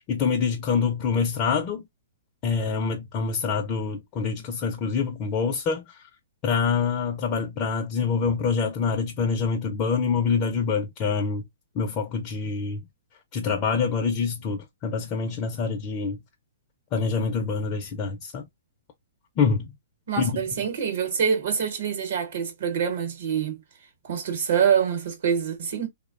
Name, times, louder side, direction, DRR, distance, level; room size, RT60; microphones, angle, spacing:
voice 1, 0.1-1.8 2.4-6.0 6.4-11.4 11.8-12.8 13.3-16.2 16.9-18.5 19.4-19.7 20.2-20.4, left 5 dB, 30° left, 0.4 m, -26 dB
voice 2, 20.1-23.6 24.0-25.9, right 7 dB, 70° right, 0.9 m, -25 dB
2.8 x 2.1 x 2.3 m
hypercardioid pair, 145°, 0 cm